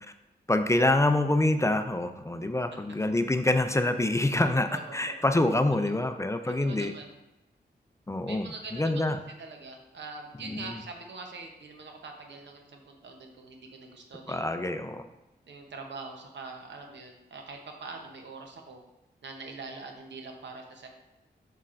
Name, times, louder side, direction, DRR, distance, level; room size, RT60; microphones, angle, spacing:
voice 1, 0.5-6.9 8.1-9.2 10.4-10.7 14.3-15.0, left 2 dB, 15° left, 8 dB, 0.5 m, -26 dB
voice 2, 4.7-5.1 6.0-6.1 6.6-7.1 8.3-9.0 9.4-14.4 15.5-18.8 19.2-20.9, right 3 dB, 85° right, 3 dB, 0.9 m, -43 dB
7.3 x 5.6 x 2.5 m, 0.99 s
cardioid pair, 55°, 18 cm